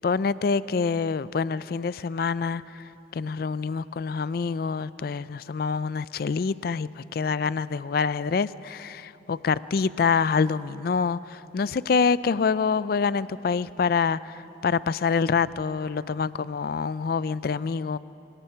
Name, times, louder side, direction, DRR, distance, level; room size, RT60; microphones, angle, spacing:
voice 1, 0.0-18.0, left 5 dB, 55° left, 18 dB, 0.4 m, -26 dB
25.0 x 19.5 x 5.7 m, 3.0 s
head